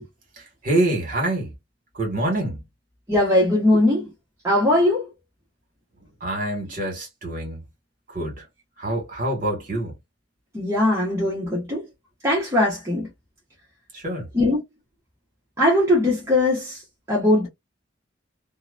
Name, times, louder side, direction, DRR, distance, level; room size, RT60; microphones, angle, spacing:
voice 1, 0.4-1.5 1.9-2.6 6.2-7.6 8.1-8.4 8.8-9.9 13.9-14.3, right 1 dB, 45° right, 1.4 m, -26 dB
voice 2, 3.1-4.1 4.4-5.1 10.5-11.9 12.2-13.1 14.3-14.6 15.6-16.8 17.1-17.5, left 1 dB, 15° right, 0.8 m, -20 dB
2.8 x 2.0 x 2.4 m
head